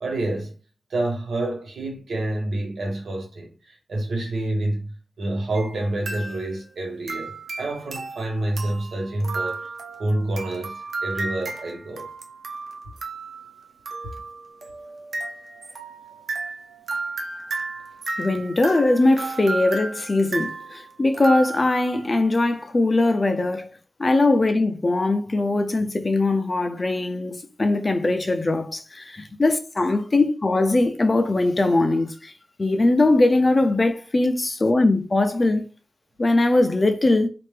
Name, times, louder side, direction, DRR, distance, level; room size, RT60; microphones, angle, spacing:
voice 1, 0.0-0.5 0.9-9.7 10.0-12.1, right 1 dB, 85° right, 1.2 m, -28 dB
sound 1, 5.5-5.8 6.1-6.7 7.1-22.0, right 3 dB, 70° right, 0.6 m, -33 dB
voice 2, 18.2-23.7 24.0-32.3 32.6-35.7 36.2-37.3, left 2 dB, 30° left, 0.5 m, -21 dB
4.3 x 2.5 x 3.3 m
wide cardioid pair, 160°, 0 cm